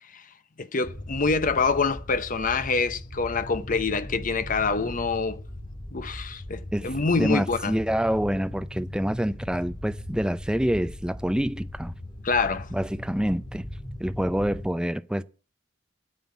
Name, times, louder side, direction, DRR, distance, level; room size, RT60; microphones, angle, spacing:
voice 1, 0.6-5.4 5.9-7.7 12.2-12.7, left 4 dB, 45° left, 0.9 m, -26 dB
sound 1, 0.8-14.7, left 1 dB, 25° left, 2.5 m, -39 dB
voice 2, 6.7-11.9 12.7-13.7 14.0-15.2, equal, 5° right, 0.5 m, -27 dB
9.2 x 7.9 x 8.4 m
head